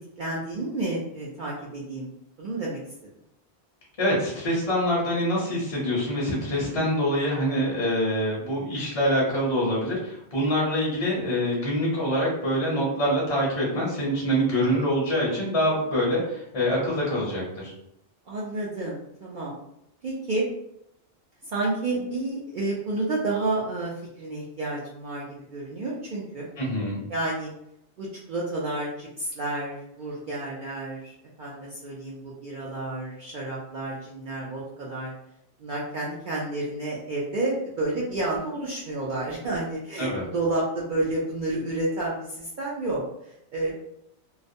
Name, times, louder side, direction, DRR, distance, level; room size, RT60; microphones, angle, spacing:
voice 1, 0.2-2.1 2.4-2.8 6.7-7.0 18.3-19.6 20.0-20.5 21.4-26.5 27.1-27.5 28.0-35.1 35.6-43.7, right 2 dB, 60° right, -6 dB, 0.6 m, -30 dB
voice 2, 4.0-17.7 26.6-27.0 40.0-40.2, equal, 35° left, -4 dB, 0.6 m, -25 dB
2.3 x 2.1 x 2.6 m, 0.79 s
omnidirectional pair, 1.1 m